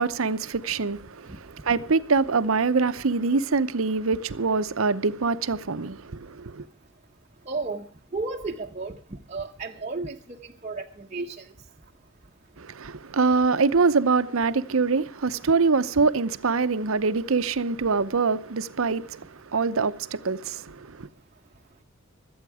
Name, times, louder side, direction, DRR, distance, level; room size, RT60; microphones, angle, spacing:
voice 1, 0.0-6.7 12.6-21.1, right 4 dB, 75° right, 0.8 m, -24 dB
voice 2, 7.5-7.9 8.1-9.0 9.3-10.4 10.6-11.4, right 3 dB, 35° right, 0.8 m, -32 dB
24.5 x 8.9 x 4.9 m
head